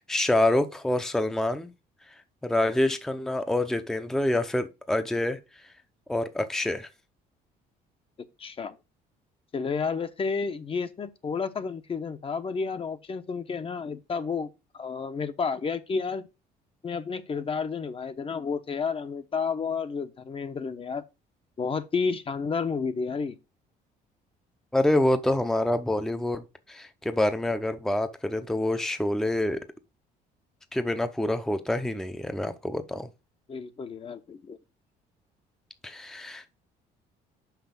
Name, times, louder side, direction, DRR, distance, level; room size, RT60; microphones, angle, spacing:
voice 1, 0.0-1.7 2.4-5.4 6.1-6.9 24.7-29.6 30.7-33.1 35.8-36.5, left 1 dB, 5° left, 0.7 m, -26 dB
voice 2, 8.4-8.8 9.5-14.5 14.7-16.3 16.8-21.0 21.6-23.4 33.5-34.6, left 5 dB, 35° left, 0.9 m, -31 dB
5.9 x 5.5 x 7.0 m
cardioid pair, 110°, 17 cm